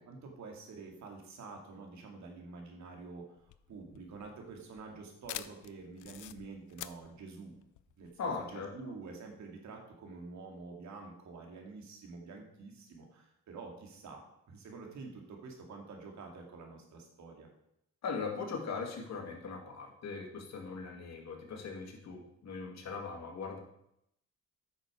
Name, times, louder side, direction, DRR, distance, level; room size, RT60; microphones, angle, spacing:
voice 1, 0.1-7.5 8.0-17.5, right 4 dB, 65° right, 2 dB, 2.5 m, -48 dB
sound 1, 3.4-8.5, left 14 dB, 80° left, 0.5 m, -47 dB
voice 2, 8.2-8.7 18.0-23.6, left 4 dB, 60° left, 1 dB, 2.3 m, -40 dB
9.1 x 6.6 x 4.9 m, 0.77 s
cardioid pair, 90°, 30 cm